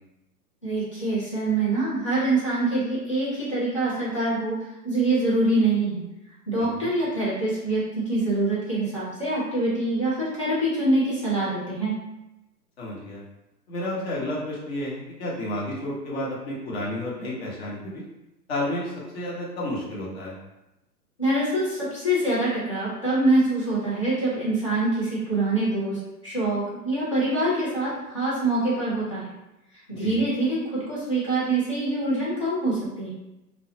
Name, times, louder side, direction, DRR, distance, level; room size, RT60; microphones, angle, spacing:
voice 1, 0.6-4.6 4.8-6.0 6.5-11.9 21.2-29.3 29.9-33.1, right 2 dB, 25° left, -9 dB, 0.3 m, -25 dB
voice 2, 6.6-6.9 12.8-13.2 13.7-18.0 18.5-20.3 30.0-30.1, left 1 dB, 40° left, -5 dB, 0.9 m, -31 dB
2.5 x 2.0 x 2.7 m, 0.95 s
hypercardioid pair, 130°, 49 cm